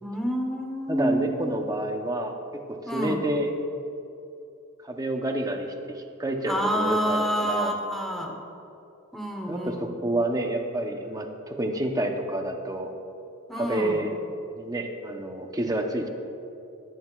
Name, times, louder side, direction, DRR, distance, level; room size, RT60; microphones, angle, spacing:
voice 1, 0.0-1.6 2.9-3.3 6.5-8.4 9.1-10.0 13.5-14.1, equal, ahead, 0 dB, 1.1 m, -28 dB
voice 2, 0.9-3.5 4.8-7.8 9.5-12.9 13.6-14.1 14.6-16.1, right 1 dB, 20° right, 4 dB, 0.8 m, -29 dB
16.5 x 9.9 x 2.4 m, 2.7 s
head